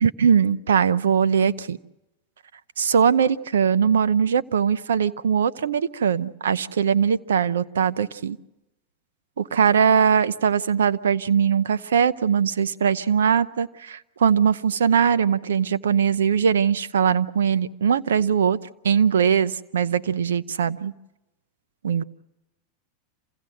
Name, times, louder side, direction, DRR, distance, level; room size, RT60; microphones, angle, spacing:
voice 1, 0.0-1.8 2.8-8.4 9.4-18.6 18.8-20.9 21.8-22.0, right 7 dB, 90° right, 16 dB, 0.7 m, -21 dB
27.5 x 16.5 x 7.8 m, 0.95 s
hypercardioid pair, 110°, 0 cm